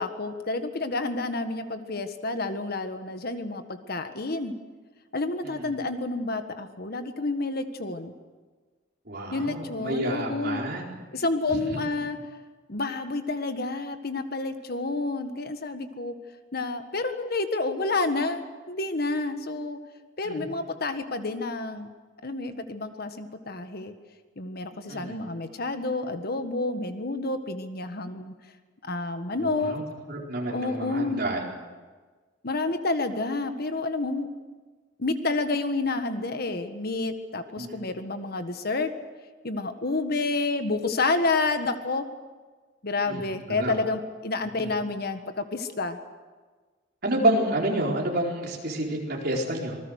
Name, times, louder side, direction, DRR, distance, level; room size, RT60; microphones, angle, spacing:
voice 1, 0.0-4.5 5.1-8.1 9.3-10.6 11.1-12.2 12.7-16.1 16.5-19.8 20.2-21.9 22.2-23.9 24.4-28.3 28.8-29.8 30.5-31.3 32.4-34.3 35.0-38.9 39.4-42.1 42.8-46.0, left 3 dB, 55° left, 8 dB, 1.6 m, -29 dB
voice 2, 9.1-10.8 11.5-12.0 20.2-20.5 24.9-25.2 29.4-29.8 30.1-31.4 37.6-37.8 43.1-43.2 43.5-43.7 44.6-44.7 47.0-49.8, right 1 dB, 55° right, -1 dB, 4.3 m, -29 dB
26.5 x 20.0 x 6.5 m, 1.4 s
head